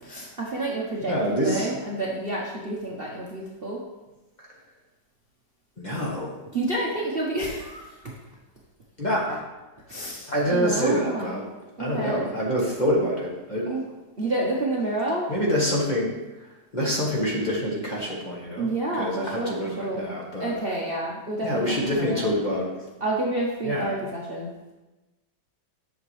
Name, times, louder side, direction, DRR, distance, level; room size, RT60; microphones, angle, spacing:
voice 1, 0.0-3.8 6.5-8.1 9.9-11.3 11.8-12.2 13.7-13.8 14.2-15.3 18.6-20.0 20.4-21.6 22.0-22.2 23.0-24.5, right 2 dB, 40° right, -4 dB, 1.0 m, -29 dB
voice 2, 1.1-1.7 5.8-6.4 9.0-9.5 10.3-11.5 11.8-13.7 15.3-16.2 16.7-20.5 21.4-22.8 23.6-24.0, equal, 25° left, -4 dB, 1.4 m, -26 dB
10.0 x 6.5 x 3.3 m, 1.1 s
omnidirectional pair, 2.0 m